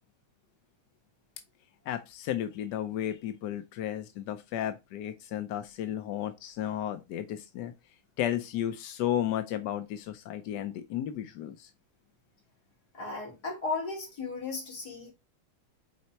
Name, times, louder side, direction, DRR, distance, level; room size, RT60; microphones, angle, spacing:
voice 1, 1.9-7.7 8.2-11.7, left 11 dB, 70° left, 1.1 m, -33 dB
voice 2, 12.9-15.1, left 3 dB, 45° left, 3.3 m, -35 dB
5.7 x 4.1 x 4.4 m
omnidirectional pair, 2.3 m